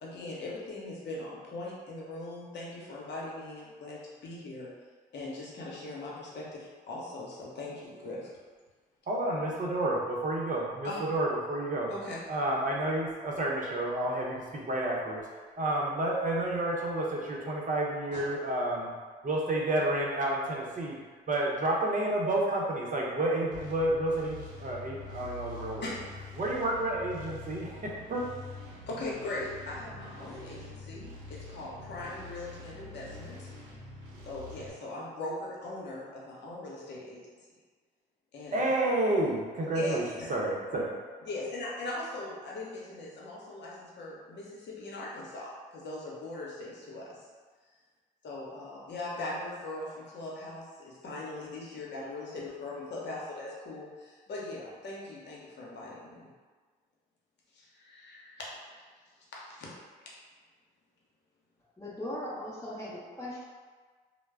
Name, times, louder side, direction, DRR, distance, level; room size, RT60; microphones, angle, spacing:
voice 1, 0.0-4.7 5.1-8.3 10.8-11.0 11.9-12.2 18.1-18.3 25.8-25.9 28.9-33.5 34.3-37.2 38.3-38.7 39.7-40.3 41.2-47.2 48.2-56.3 57.5-58.3 58.7-58.8 59.5-59.7, left 2 dB, 60° left, -5 dB, 0.8 m, -40 dB
voice 2, 9.1-11.9 12.3-15.2 15.6-18.9 19.2-20.9 21.3-25.9 26.4-28.2 38.5-40.0 40.3-40.9, right 1 dB, 40° right, -3 dB, 0.7 m, -30 dB
sound 1, 23.5-34.7, left 2 dB, 80° right, 0.6 m, -45 dB
voice 3, 61.8-63.4, left 1 dB, 15° left, -7 dB, 0.8 m, -39 dB
2.2 x 2.0 x 3.4 m, 1.5 s
hypercardioid pair, 50°, 21 cm